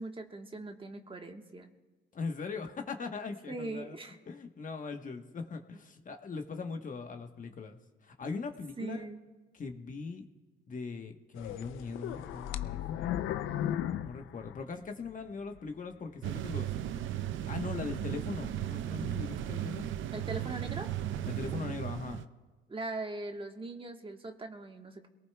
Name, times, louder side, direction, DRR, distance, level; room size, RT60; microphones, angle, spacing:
voice 1, 0.0-1.7 3.5-4.2 8.8-9.2 20.1-20.9 22.7-25.1, right 2 dB, 25° right, 4 dB, 1.3 m, -40 dB
voice 2, 2.1-4.0 4.3-7.8 8.0-9.1 9.5-10.3 10.7-13.1 14.0-16.7 17.5-19.9 21.3-22.2, left 4 dB, 40° left, 5 dB, 1.1 m, -40 dB
sound 1, 11.4-15.1 15.6-15.7 16.3-16.4, left 11 dB, 90° left, 0.5 m, -36 dB
sound 2, 16.2-22.3, right 11 dB, 80° right, 0.6 m, -36 dB
26.5 x 18.5 x 2.3 m, 1.2 s
cardioid pair, 90°, 20 cm